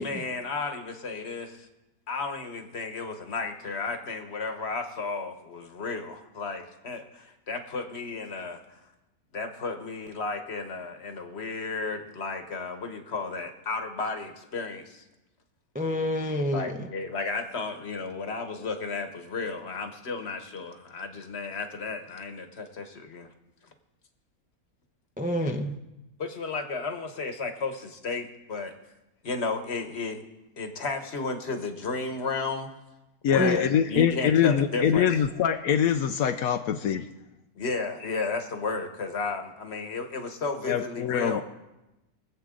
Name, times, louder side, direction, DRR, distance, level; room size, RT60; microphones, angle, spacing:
voice 1, 0.0-1.7 2.1-8.6 9.3-15.0 16.5-23.3 26.2-28.7 29.2-30.2 30.6-32.7 33.3-35.1 37.6-41.4, left 3 dB, 45° left, 6 dB, 1.4 m, -33 dB
voice 2, 15.7-16.9 25.2-25.8 33.4-33.6, left 1 dB, 10° right, 3 dB, 0.4 m, -28 dB
voice 3, 33.2-37.1 40.7-41.4, left 8 dB, 75° left, 7 dB, 1.0 m, -24 dB
23.0 x 8.0 x 3.8 m, 0.97 s
omnidirectional pair, 1.6 m